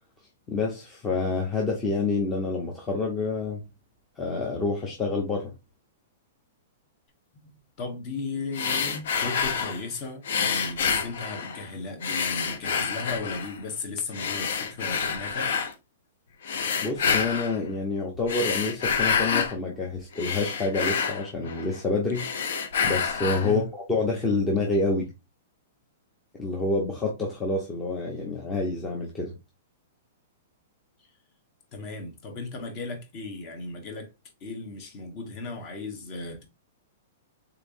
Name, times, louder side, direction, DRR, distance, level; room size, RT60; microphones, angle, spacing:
voice 1, 0.5-3.6 4.2-5.5 16.8-22.2 22.8-25.1 26.4-29.3, left 3 dB, 15° left, 0.8 m, -28 dB
voice 2, 7.8-15.5 23.4-23.6 31.0-31.1 31.7-34.1 34.4-36.4, left 3 dB, 35° left, 1.2 m, -36 dB
sound 1, 8.5-9.8 10.2-11.7 12.0-13.6 14.1-15.7 16.4-17.6 18.1-19.5 19.9-21.8 22.1-23.5, left 6 dB, 70° left, 0.8 m, -28 dB
3.9 x 3.2 x 2.6 m
hypercardioid pair, 155°, 0 cm